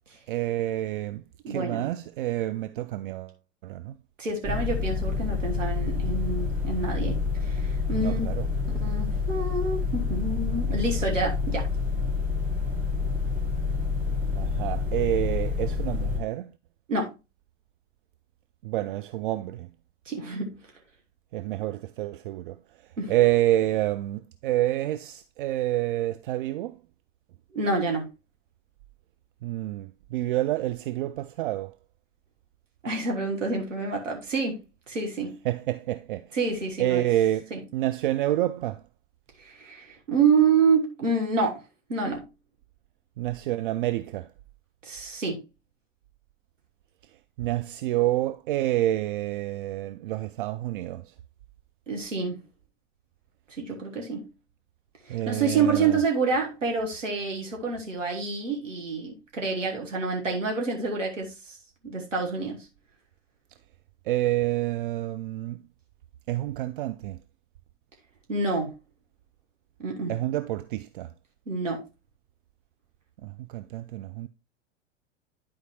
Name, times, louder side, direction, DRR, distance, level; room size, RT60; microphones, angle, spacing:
voice 1, 0.3-3.3 3.6-4.0 7.9-8.5 14.4-16.5 18.6-19.7 21.3-22.6 23.1-26.8 29.4-31.7 35.4-36.3 36.8-38.8 43.2-44.3 47.4-51.1 55.1-56.0 64.1-65.6 66.3-67.2 70.1-71.1 73.2-74.3, right 14 dB, 45° right, 0.4 m, -28 dB
voice 2, 1.4-1.9 4.2-8.2 8.8-11.7 16.9-17.1 20.0-20.6 23.0-23.1 27.5-28.1 32.8-35.4 36.3-37.1 37.5-37.6 39.4-41.6 41.9-42.3 44.8-45.4 51.9-52.4 53.6-54.3 55.0-61.6 61.8-62.7 68.3-68.7 69.8-70.1 71.5-71.8, right 4 dB, 80° right, 1.6 m, -28 dB
sound 1, 4.4-16.2, left 4 dB, 20° right, 2.9 m, -28 dB
11.0 x 4.7 x 3.0 m
figure-of-eight pair, 90°, 37 cm